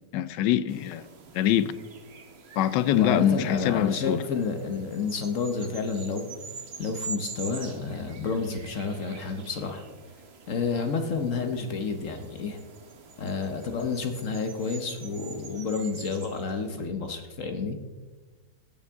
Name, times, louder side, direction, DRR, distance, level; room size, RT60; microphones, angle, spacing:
voice 1, 0.1-1.0 1.3-1.7 2.6-4.2, left 11 dB, 85° left, 1.3 m, -24 dB
sound 1, 0.7-16.9, right 5 dB, 45° right, 1.1 m, -45 dB
voice 2, 2.9-6.4 6.8-9.8 10.5-12.6 13.2-17.8, left 4 dB, 55° left, 1.2 m, -30 dB
15.5 x 8.6 x 3.6 m
omnidirectional pair, 1.9 m